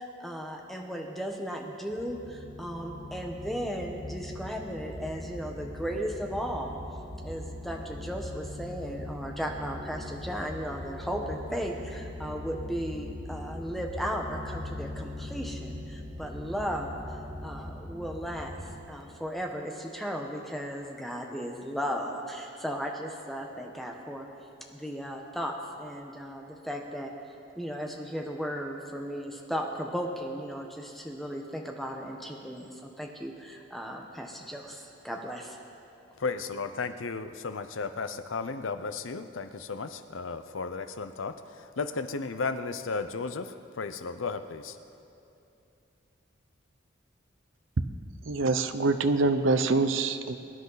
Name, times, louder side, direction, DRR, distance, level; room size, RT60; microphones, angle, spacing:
voice 1, 0.0-6.8 7.2-18.6 18.9-24.3 24.7-27.1 27.6-35.6, equal, ahead, 1 dB, 1.1 m, -36 dB
sound 1, 1.9-18.8, left 1 dB, 25° right, 4.0 m, -41 dB
voice 2, 36.2-41.3 41.8-43.5 43.8-44.7, left 4 dB, 85° left, 10 dB, 0.7 m, -34 dB
voice 3, 48.3-50.4, right 3 dB, 85° right, 10 dB, 0.7 m, -25 dB
23.0 x 10.5 x 4.0 m, 2.7 s
head